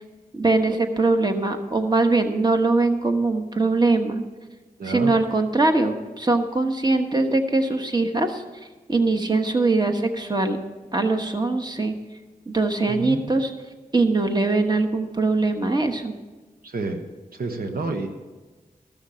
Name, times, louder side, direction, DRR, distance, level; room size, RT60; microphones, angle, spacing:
voice 1, 0.3-4.2 4.8-8.4 8.9-10.6 10.9-11.9 12.5-13.5 13.9-16.1, right 3 dB, 30° right, 6 dB, 1.2 m, -22 dB
voice 2, 4.8-5.1 12.9-13.2 16.6-17.0 17.4-18.1, right 3 dB, 85° right, 4 dB, 1.1 m, -29 dB
14.0 x 6.4 x 7.4 m, 1.3 s
cardioid pair, 50°, 15 cm